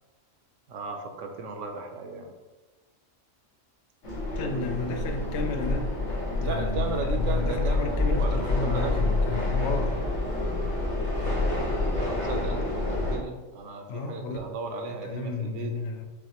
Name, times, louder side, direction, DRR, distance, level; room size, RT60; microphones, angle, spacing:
voice 1, 0.7-2.3 4.5-4.8 6.4-9.1 11.2-11.4 12.0-15.7, right 3 dB, 75° right, 4 dB, 0.9 m, -35 dB
sound 1, 4.0-13.2, left 2 dB, 85° left, 1.7 m, -27 dB
voice 2, 4.4-5.9 6.4-10.0 13.9-14.4 15.0-16.0, left 3 dB, 65° left, 5 dB, 0.7 m, -32 dB
5.6 x 2.1 x 2.9 m, 1.2 s
omnidirectional pair, 1.3 m